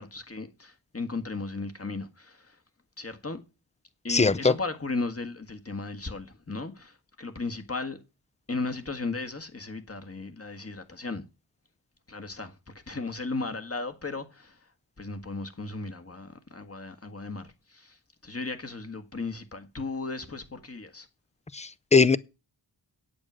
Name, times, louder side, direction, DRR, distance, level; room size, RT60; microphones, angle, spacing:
voice 1, 0.0-2.6 3.0-3.4 4.0-8.0 8.5-11.2 12.1-14.7 15.0-21.1, left 3 dB, 35° left, 1.6 m, -36 dB
voice 2, 4.1-4.5 21.5-22.2, left 4 dB, 15° left, 0.5 m, -21 dB
9.1 x 8.7 x 6.2 m
wide cardioid pair, 90°, 43 cm